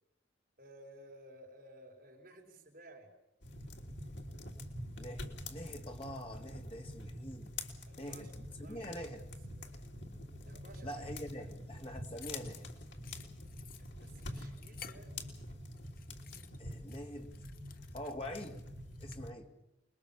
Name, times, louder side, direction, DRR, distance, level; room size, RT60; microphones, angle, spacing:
voice 1, 0.6-3.1 7.9-8.3 8.6-9.8 10.5-11.1 11.4-11.5 13.8-15.1, right 1 dB, 50° right, 4.9 m, -56 dB
sound 1, 3.4-19.3, left 1 dB, 75° left, 3.2 m, -46 dB
voice 2, 5.0-7.5 8.0-9.2 10.8-12.6 16.6-17.3 17.9-18.6 19.0-19.5, equal, 30° left, 2.5 m, -45 dB
sound 2, 12.2-15.5 15.8-19.2, left 9 dB, 50° left, 1.0 m, -55 dB
28.0 x 21.5 x 7.3 m
head